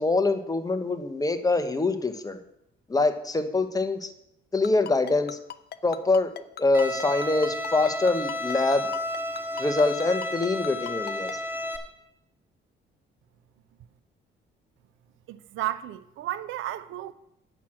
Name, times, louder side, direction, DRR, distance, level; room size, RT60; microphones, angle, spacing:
voice 1, 0.0-2.4 2.9-4.1 4.5-5.4 5.8-8.9 9.6-11.3, left 3 dB, 20° left, 1.1 m, -24 dB
Ringtone, 4.6-11.3, left 10 dB, 55° left, 0.6 m, -38 dB
Bowed string instrument, 6.7-11.8, left 1 dB, 10° right, 1.5 m, -32 dB
voice 2, 15.3-17.1, right 13 dB, 85° right, 0.6 m, -33 dB
8.2 x 6.0 x 7.5 m
cardioid pair, 90°, 20 cm